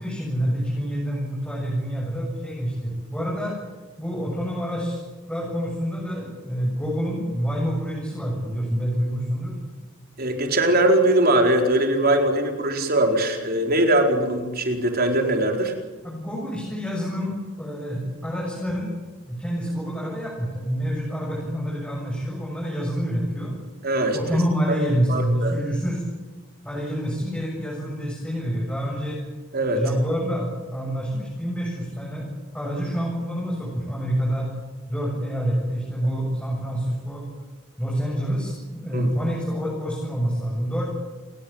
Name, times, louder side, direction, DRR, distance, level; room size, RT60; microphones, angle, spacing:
voice 1, 0.0-3.6 4.0-5.0 5.3-9.6 16.0-18.9 19.3-23.5 24.1-26.0 26.6-29.2 29.7-32.3 32.5-34.5 34.9-37.2 37.8-38.5 38.8-40.9, equal, 5° left, -3 dB, 7.7 m, -27 dB
voice 2, 10.2-15.7 23.8-24.2 24.7-24.8 25.1-25.5 29.5-29.8 38.9-39.1, right 1 dB, 45° right, 3 dB, 4.5 m, -21 dB
30.0 x 20.5 x 8.9 m, 1.3 s
head